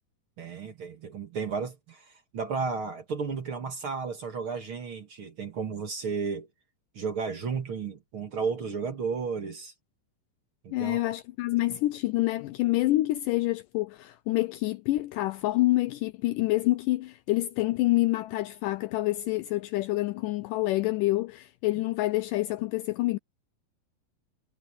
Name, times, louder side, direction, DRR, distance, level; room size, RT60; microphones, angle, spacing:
voice 1, 0.4-6.5 6.9-9.7 10.6-11.1, right 5 dB, 45° right, 2.2 m, -33 dB
voice 2, 10.7-23.2, left 18 dB, 80° left, 2.0 m, -27 dB
omnidirectional pair, 4.2 m